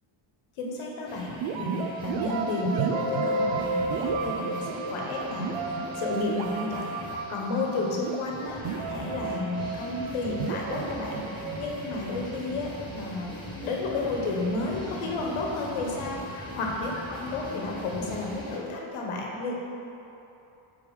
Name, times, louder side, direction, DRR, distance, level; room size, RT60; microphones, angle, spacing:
voice 1, 0.6-13.4 13.6-19.5, left 3 dB, 75° left, -1 dB, 1.3 m, -32 dB
sound 1, 1.0-18.6, equal, 10° left, 1.4 m, -41 dB
sound 2, 1.4-13.1, right 4 dB, 70° right, 0.6 m, -32 dB
7.8 x 3.6 x 5.0 m, 3.0 s
cardioid pair, 165°, 50 cm